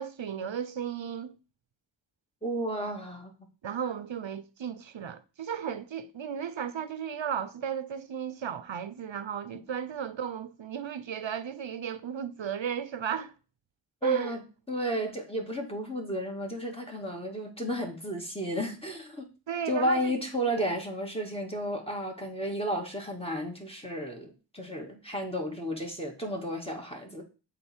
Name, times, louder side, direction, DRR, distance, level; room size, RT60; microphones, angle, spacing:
voice 1, 0.0-1.3 3.6-13.3 14.0-14.4 19.5-20.1, right 8 dB, 90° right, 0.7 m, -34 dB
voice 2, 2.4-3.3 14.0-19.2 19.7-27.2, equal, 15° left, 2.0 m, -33 dB
7.4 x 4.3 x 4.4 m
wide cardioid pair, 50°, 44 cm